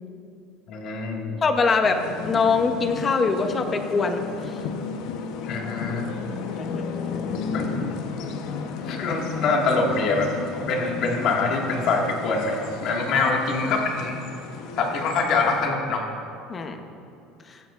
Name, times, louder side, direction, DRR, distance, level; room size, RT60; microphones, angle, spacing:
voice 1, 0.7-1.4 5.4-6.1 7.5-7.7 8.9-10.3 10.6-14.2 14.8-16.0, left 3 dB, 50° left, 0 dB, 1.9 m, -24 dB
voice 2, 1.4-4.6 6.6-6.9 13.2-13.3 16.5-16.8 17.5-17.6, left 4 dB, 25° left, 6 dB, 0.9 m, -23 dB
sound 1, 1.8-15.6, left 5 dB, 70° left, 0.9 m, -33 dB
15.0 x 14.5 x 2.5 m, 2.6 s
cardioid pair, 145°, 0 cm